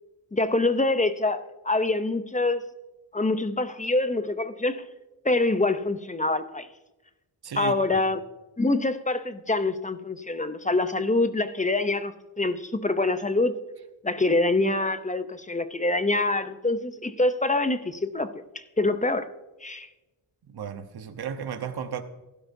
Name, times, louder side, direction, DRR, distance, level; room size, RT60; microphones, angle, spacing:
voice 1, 0.3-2.6 3.1-4.8 5.2-6.7 7.6-8.2 8.6-13.5 14.0-19.3 19.6-19.9, left 2 dB, 15° left, 0.6 m, -25 dB
voice 2, 7.4-7.8 20.5-22.0, right 7 dB, 55° right, 1.1 m, -34 dB
16.0 x 12.0 x 2.7 m
wide cardioid pair, 105°, 47 cm